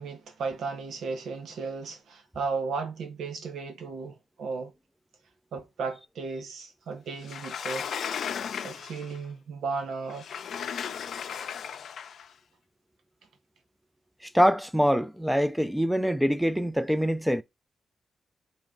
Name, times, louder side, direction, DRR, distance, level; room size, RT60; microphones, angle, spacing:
voice 1, 0.0-4.7 5.5-7.9 8.6-10.3 11.3-11.5, right 4 dB, 85° right, 0.8 m, -35 dB
Sliding door, 7.2-9.2 10.1-12.3, left 7 dB, 75° left, 0.4 m, -35 dB
voice 2, 14.2-17.4, equal, ahead, 0.4 m, -24 dB
3.4 x 3.0 x 3.7 m
cardioid pair, 65°, 0 cm